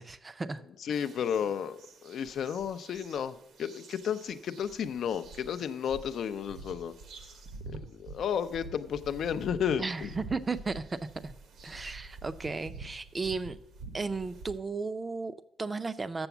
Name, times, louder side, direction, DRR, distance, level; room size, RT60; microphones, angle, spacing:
voice 1, 0.0-0.6 9.8-11.3 11.6-13.6 13.9-16.3, right 4 dB, 25° right, 13 dB, 0.5 m, -35 dB
voice 2, 0.8-6.9 7.7-10.1, left 8 dB, 60° left, 11 dB, 0.4 m, -33 dB
sound 1, 0.9-14.6, right 3 dB, 75° right, 1.2 m, -48 dB
6.9 x 6.9 x 7.0 m, 0.82 s
cardioid pair, 125°, 0 cm